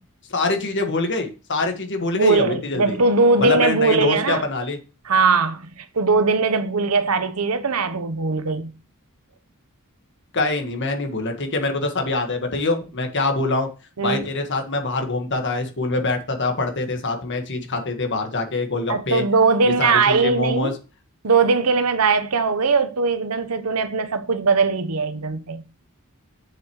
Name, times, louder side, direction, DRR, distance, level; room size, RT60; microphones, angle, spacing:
voice 1, 0.3-3.0 3.4-4.8 10.3-13.7 14.0-19.2 19.6-20.7, left 2 dB, 55° left, 1.6 m, -24 dB
voice 2, 2.1-4.4 5.0-8.7 14.0-14.3 18.9-20.7 21.2-25.6, right 4 dB, 85° right, 0.9 m, -20 dB
7.5 x 6.6 x 3.1 m
head